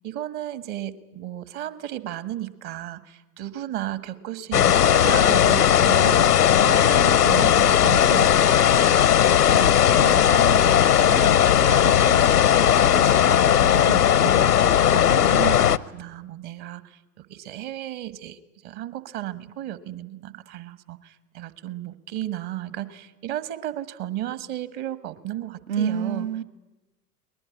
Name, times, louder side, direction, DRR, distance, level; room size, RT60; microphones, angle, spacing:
voice 1, 0.0-26.3, right 12 dB, 45° right, 1.6 m, -34 dB
sound 1, 4.5-15.8, left 10 dB, 85° left, 0.7 m, -17 dB
voice 2, 25.7-26.4, right 8 dB, 60° right, 0.9 m, -27 dB
22.5 x 20.5 x 9.9 m
figure-of-eight pair, 80°, 45 cm